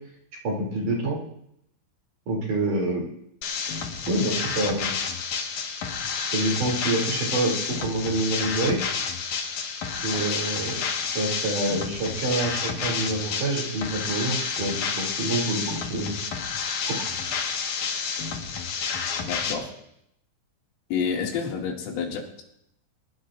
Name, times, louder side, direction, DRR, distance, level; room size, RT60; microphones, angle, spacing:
voice 1, 0.4-1.2 2.3-3.0 4.1-5.1 6.3-8.8 10.0-10.8 11.2-16.2 16.5-17.0, right 2 dB, 45° right, -2 dB, 3.8 m, -27 dB
sound 1, 3.4-19.5, left 6 dB, 65° left, 2.0 m, -30 dB
voice 2, 10.1-10.5 11.0-11.1 19.3-19.7 20.9-22.4, left 6 dB, 80° left, -1 dB, 4.8 m, -30 dB
23.5 x 20.0 x 2.5 m, 0.77 s
omnidirectional pair, 5.7 m